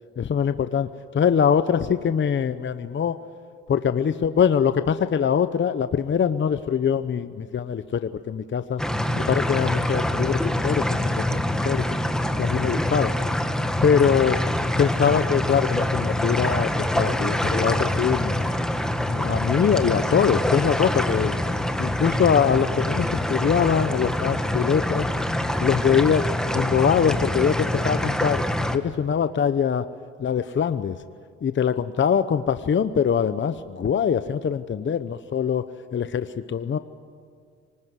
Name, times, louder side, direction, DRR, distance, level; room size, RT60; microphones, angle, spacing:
voice 1, 0.2-3.2 3.7-8.8 9.2-10.9 11.2-11.8 12.4-13.1 13.8-14.4 14.8-18.4 19.1-21.4 21.8-25.1 25.6-26.2 26.5-28.4 28.7-29.9 30.2-31.0 31.4-35.7 35.9-36.8, left 7 dB, 40° left, 11 dB, 0.9 m, -23 dB
sound 1, 8.8-28.8, left 1 dB, ahead, 1.6 m, -25 dB
24.5 x 19.5 x 9.7 m, 2.1 s
cardioid pair, 90°, 30 cm